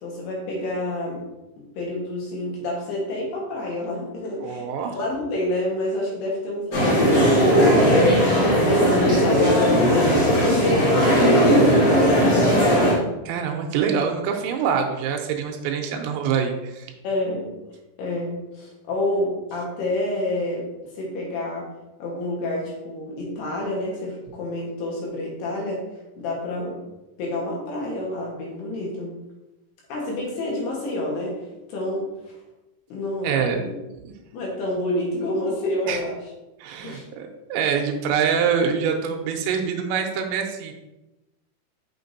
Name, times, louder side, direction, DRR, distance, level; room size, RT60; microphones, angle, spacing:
voice 1, 0.0-1.2 1.7-4.7 4.9-7.2 7.8-11.6 11.9-12.8 17.0-17.5 18.0-20.7 21.0-21.7 22.0-25.8 26.2-26.8 27.2-29.2 29.9-31.4 31.7-32.3 32.9-33.3 33.6-33.7 34.3-36.1 36.8-37.0, left 1 dB, 65° left, -3 dB, 3.0 m, -29 dB
voice 2, 4.4-5.0 13.3-16.9 33.2-33.6 34.0-34.1 35.9-36.0 36.6-40.7, right 6 dB, 80° right, 2 dB, 2.8 m, -25 dB
sound 1, 6.7-12.9, equal, 80° left, 1.0 m, -17 dB
6.4 x 5.9 x 2.7 m, 0.99 s
omnidirectional pair, 5.6 m